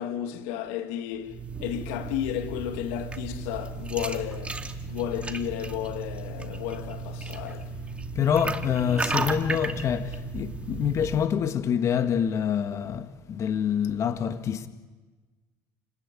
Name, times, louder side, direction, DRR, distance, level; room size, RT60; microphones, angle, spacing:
voice 1, 0.0-4.6 4.9-7.7, left 11 dB, 85° left, 2.2 m, -33 dB
sound 1, 1.2-11.3, right 3 dB, 15° right, 2.4 m, -34 dB
voice 2, 8.2-14.7, left 8 dB, 45° left, 1.7 m, -26 dB
30.0 x 20.0 x 9.1 m
supercardioid pair, 95°, 7 cm